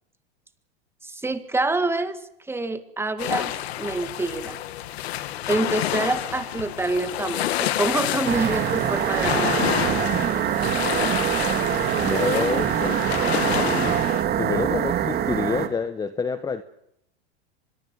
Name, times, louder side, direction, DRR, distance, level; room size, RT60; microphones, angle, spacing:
voice 1, 1.0-2.2 2.5-4.6 5.5-9.6, right 2 dB, 5° right, 9 dB, 1.9 m, -26 dB
sound 1, 3.2-14.2, left 13 dB, 75° left, 1.8 m, -29 dB
sound 2, 8.3-15.7, right 10 dB, 30° right, 2.3 m, -24 dB
voice 2, 11.9-13.2 13.4-14.1 14.4-16.6, left 5 dB, 10° left, 11 dB, 1.0 m, -28 dB
24.0 x 22.0 x 7.5 m, 0.78 s
supercardioid pair, 125°, 32 cm